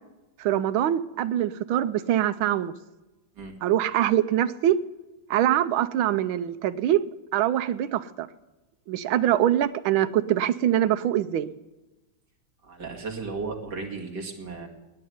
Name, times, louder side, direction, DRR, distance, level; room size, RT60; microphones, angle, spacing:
voice 1, 0.4-2.7 3.6-4.8 5.3-7.0 7.3-8.3 8.9-11.5, right 11 dB, 90° right, 13 dB, 1.5 m, -23 dB
voice 2, 12.6-14.7, right 4 dB, 55° right, 2 dB, 2.8 m, -35 dB
19.5 x 7.9 x 9.5 m, 1.1 s
omnidirectional pair, 2.2 m